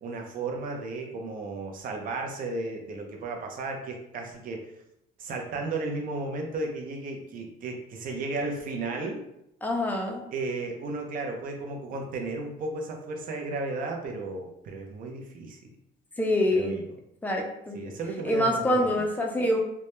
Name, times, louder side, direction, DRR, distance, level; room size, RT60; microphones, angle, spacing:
voice 1, 0.0-4.7 5.2-9.2 10.3-15.7 16.5-16.9 17.7-19.0, right 3 dB, 55° right, 2 dB, 0.5 m, -34 dB
voice 2, 9.6-10.2 16.2-16.8 17.2-17.8 18.2-19.6, left 1 dB, 10° left, 1 dB, 0.4 m, -25 dB
2.2 x 2.1 x 2.9 m, 0.82 s
cardioid pair, 110°, 17 cm